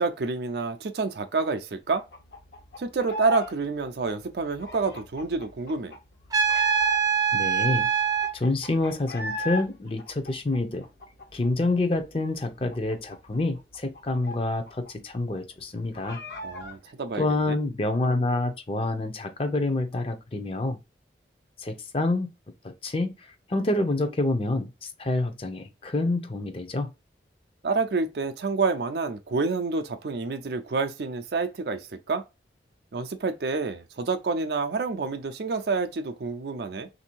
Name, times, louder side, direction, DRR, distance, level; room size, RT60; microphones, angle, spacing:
voice 1, 0.0-2.1 2.8-6.0 16.4-17.6 27.6-32.2 32.9-36.9, right 4 dB, 65° right, 0.5 m, -28 dB
sound 1, 1.9-3.5 3.8-7.3 7.7-7.8 8.0-9.6 10.0-11.7 12.0-12.1 12.4-14.9 15.2-15.3 15.6-16.8, left 1 dB, 65° left, 1.0 m, -37 dB
Trumpet, 6.3-8.3, right 7 dB, 20° right, 0.6 m, -23 dB
voice 2, 7.3-7.9 8.3-10.8 11.3-16.2 17.2-20.8 21.6-22.3 22.6-23.1 23.5-24.7 25.0-26.9, left 2 dB, 30° left, 0.6 m, -27 dB
3.3 x 2.6 x 4.4 m
head